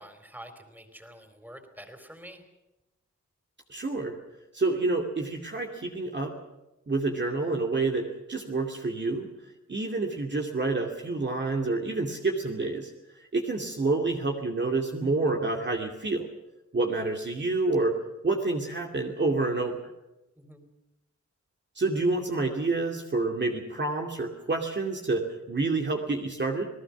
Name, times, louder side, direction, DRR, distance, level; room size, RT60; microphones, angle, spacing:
voice 1, 0.0-2.4 20.4-20.7, right 1 dB, 5° right, 6 dB, 4.3 m, -47 dB
voice 2, 3.7-4.1 4.5-6.3 6.9-9.3 9.7-12.9 13.2-16.3 16.7-17.9 18.2-19.8 21.8-26.7, right 3 dB, 40° right, 1 dB, 2.5 m, -28 dB
28.5 x 19.0 x 6.1 m, 0.98 s
wide cardioid pair, 90°, 29 cm